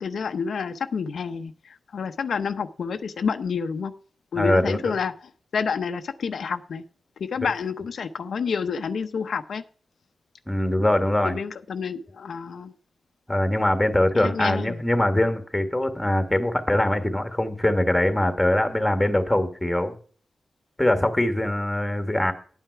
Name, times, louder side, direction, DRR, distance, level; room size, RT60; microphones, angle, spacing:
voice 1, 0.0-3.9 4.3-6.8 7.2-9.6 11.2-12.7 14.1-14.8, left 6 dB, 70° left, 7 dB, 0.7 m, -29 dB
voice 2, 4.3-4.9 10.5-11.4 13.3-19.9 20.8-22.3, left 1 dB, 5° left, 7 dB, 1.5 m, -22 dB
10.5 x 9.1 x 4.6 m, 0.43 s
wide cardioid pair, 165°, 0 cm